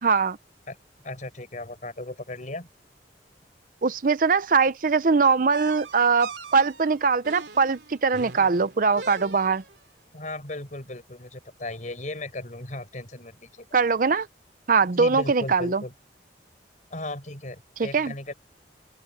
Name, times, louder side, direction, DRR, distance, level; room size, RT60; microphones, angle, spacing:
voice 1, 0.0-0.4 3.8-9.6 13.7-14.3 14.7-15.8 17.8-18.1, right 5 dB, 50° right, 0.6 m, -22 dB
voice 2, 1.0-2.7 10.1-13.7 14.9-15.9 16.9-18.3, left 2 dB, 45° left, 5.9 m, -36 dB
sound 1, 5.5-9.8, right 4 dB, 75° right, 2.8 m, -41 dB
open air
head